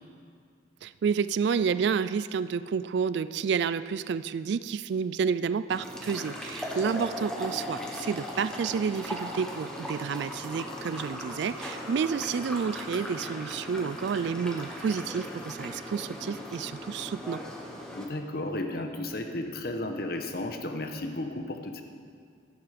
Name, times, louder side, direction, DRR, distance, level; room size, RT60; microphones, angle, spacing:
voice 1, 0.8-17.4, right 6 dB, 65° right, 15 dB, 0.3 m, -30 dB
sound 1, 5.7-18.1, left 1 dB, 5° left, 1.3 m, -38 dB
voice 2, 17.9-21.8, left 1 dB, 55° left, 5 dB, 1.2 m, -33 dB
15.0 x 11.0 x 5.1 m, 2.2 s
head